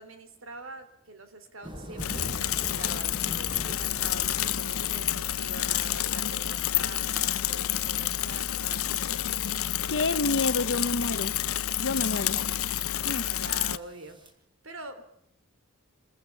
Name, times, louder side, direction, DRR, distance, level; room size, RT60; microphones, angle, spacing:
voice 1, 0.0-9.0 13.3-14.2 14.6-15.0, right 2 dB, 65° right, 9 dB, 3.4 m, -44 dB
sound 1, 1.6-14.3, equal, 25° right, 4.5 m, -46 dB
Bicycle / Mechanisms, 2.0-13.8, left 12 dB, 85° left, 0.7 m, -29 dB
voice 2, 9.9-11.3 11.8-12.4 13.0-13.3, left 3 dB, 60° left, 10 dB, 1.0 m, -28 dB
27.5 x 15.0 x 7.0 m, 0.77 s
head